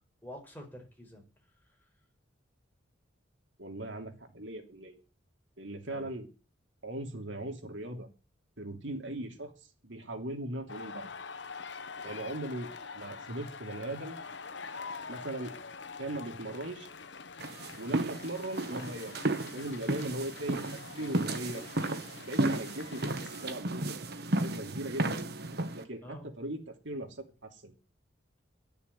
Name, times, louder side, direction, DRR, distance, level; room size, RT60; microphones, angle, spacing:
voice 1, 0.2-1.2 5.9-6.1 12.0-12.3 26.0-26.3, equal, 10° left, 0 dB, 5.1 m, -47 dB
voice 2, 3.6-5.0 5.6-6.3 6.8-8.1 8.6-9.5 9.8-11.1 12.0-14.1 15.1-15.5 16.0-16.9 17.8-19.2 19.5-21.7 22.3-24.0 24.3-25.3 25.7-27.7, right 1 dB, 70° right, 4 dB, 3.0 m, -39 dB
sound 1, 10.7-23.6, left 5 dB, 60° left, 1.0 m, -45 dB
sound 2, 17.4-25.8, right 2 dB, 55° right, 1.4 m, -33 dB
12.0 x 7.0 x 9.2 m, 0.33 s
head